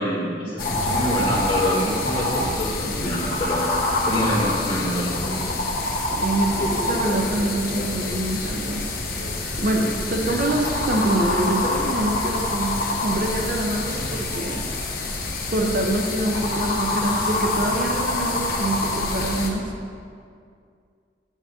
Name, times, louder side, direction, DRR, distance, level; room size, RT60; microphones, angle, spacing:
voice 1, 0.0-3.6 4.0-5.1 10.2-10.3, left 1 dB, 30° left, -8 dB, 2.2 m, -26 dB
sound 1, 0.6-19.5, left 2 dB, 55° left, 1.0 m, -26 dB
voice 2, 6.1-8.9 9.6-14.6 15.5-19.7, right 1 dB, 50° right, 1 dB, 0.8 m, -25 dB
8.3 x 7.3 x 3.6 m, 2.3 s
head